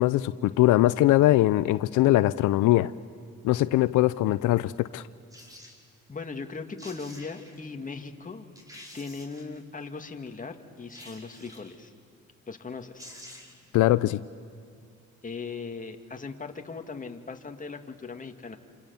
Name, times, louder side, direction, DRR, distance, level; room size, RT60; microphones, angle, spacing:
voice 1, 0.0-2.9 3.4-5.0 13.7-14.2, left 16 dB, 85° left, 15 dB, 0.6 m, -21 dB
sound 1, 5.3-5.8 6.5-6.6 6.8-7.6 8.1-8.2 8.6-9.6 10.9-11.8 12.6-12.7 13.0-13.7 14.0-14.1, left 1 dB, 10° right, 5.0 m, -48 dB
voice 2, 6.1-8.5 8.9-11.9 12.5-13.1 15.2-18.6, left 4 dB, 25° left, 5 dB, 2.2 m, -38 dB
28.0 x 27.5 x 7.1 m, 2.3 s
cardioid pair, 90°, 30 cm